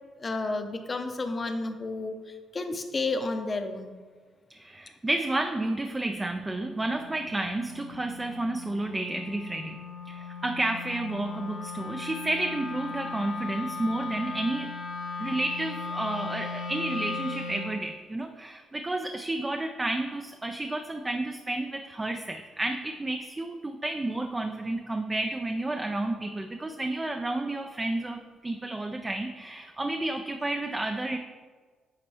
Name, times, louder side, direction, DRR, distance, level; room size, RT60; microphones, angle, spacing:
voice 1, 0.2-4.0, left 3 dB, 30° left, 7 dB, 0.7 m, -31 dB
voice 2, 4.5-9.8 10.1-14.7 15.2-31.2, right 2 dB, 20° right, 5 dB, 0.4 m, -31 dB
Wind instrument woodwind instrument, 6.2-17.8, left 4 dB, 85° left, 1.9 m, -38 dB
9.4 x 4.3 x 3.4 m, 1.5 s
cardioid pair, 90°, 0 cm